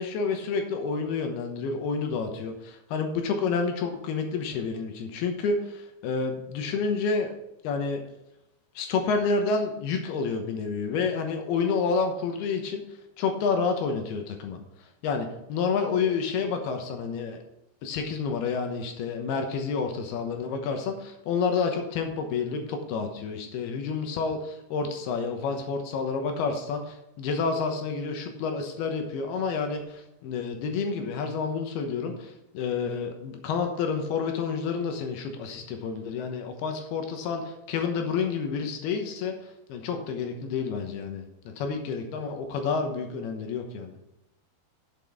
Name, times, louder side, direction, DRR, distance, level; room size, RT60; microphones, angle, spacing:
voice 1, 0.0-7.3 7.6-8.0 8.8-12.8 13.2-14.6 15.0-17.4 17.8-39.3 39.7-41.2 41.6-43.9, left 5 dB, 75° left, 4 dB, 3.0 m, -29 dB
7.7 x 7.5 x 4.9 m, 0.90 s
omnidirectional pair, 4.7 m